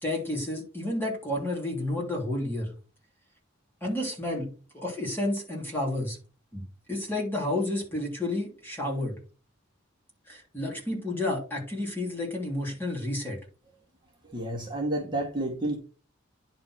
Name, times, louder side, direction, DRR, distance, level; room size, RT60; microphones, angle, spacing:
voice 1, 0.0-2.7 3.8-6.2 6.5-9.2 10.3-13.4, left 1 dB, 10° left, -2 dB, 3.1 m, -31 dB
voice 2, 14.3-15.8, right 1 dB, 25° right, -2 dB, 2.1 m, -30 dB
10.5 x 4.2 x 4.5 m, 0.35 s
head